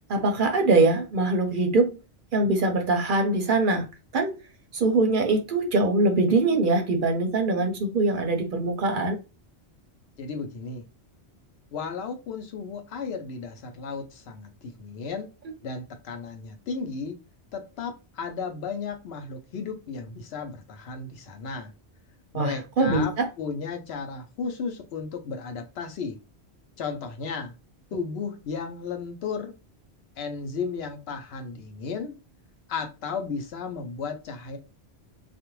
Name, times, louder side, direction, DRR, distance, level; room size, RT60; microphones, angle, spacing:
voice 1, 0.1-2.0 2.3-3.9 4.1-4.4 4.7-9.2 22.3-23.3, right 2 dB, 60° right, 0.6 m, -23 dB
voice 2, 10.2-10.8 11.7-15.3 15.6-17.2 17.5-21.7 22.3-26.2 26.8-27.5 27.9-29.5 30.2-32.2 32.7-34.6, left 5 dB, 75° left, 0.8 m, -34 dB
2.4 x 2.1 x 3.0 m
omnidirectional pair, 1.1 m